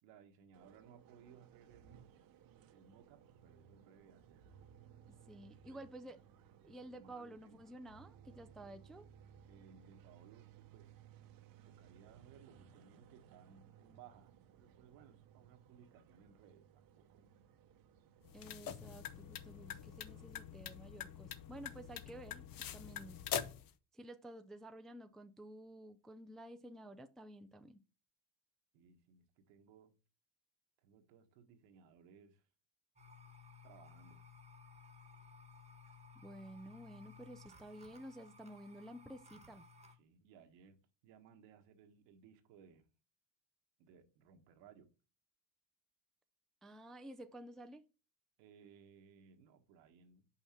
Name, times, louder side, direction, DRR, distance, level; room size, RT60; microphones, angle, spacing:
voice 1, 0.0-2.1 2.7-4.5 5.7-5.8 6.7-7.6 9.5-11.0 11.6-17.3 28.7-29.9 30.8-32.4 33.6-34.2 35.8-36.0 39.9-42.9 43.8-44.9 48.4-50.3, right 7 dB, 85° right, 1.4 m, -62 dB
sound 1, 0.5-20.3, right 8 dB, 55° right, 0.9 m, -62 dB
voice 2, 5.3-6.2 6.6-9.1 18.3-23.2 23.9-27.8 36.2-39.6 46.6-47.8, right 1 dB, ahead, 0.3 m, -52 dB
sound 2, 18.2-23.7, left 10 dB, 55° left, 0.8 m, -45 dB
sound 3, 33.0-40.0, left 4 dB, 15° right, 1.2 m, -58 dB
5.9 x 5.7 x 4.3 m
cardioid pair, 115°, 43 cm